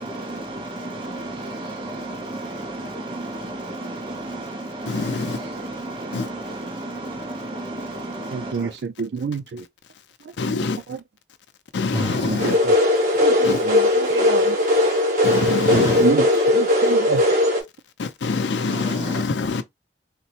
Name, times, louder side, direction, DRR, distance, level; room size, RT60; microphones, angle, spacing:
voice 1, 0.0-8.7 11.9-12.6 15.7-16.0 18.7-19.2, right 1 dB, 30° right, 0.7 m, -32 dB
voice 2, 4.9-5.4 6.1-6.3 10.4-10.8 11.7-12.6 13.4-13.6 15.2-16.0 18.0-19.6, left 4 dB, 90° left, 0.5 m, -25 dB
voice 3, 8.3-9.7 10.2-10.6 10.9-11.0 12.3-12.7 13.2-14.6 15.7-17.2, right 5 dB, 75° right, 0.4 m, -28 dB
sound 1, 12.4-17.6, left 1 dB, 45° right, 1.2 m, -18 dB
3.7 x 2.0 x 2.8 m
head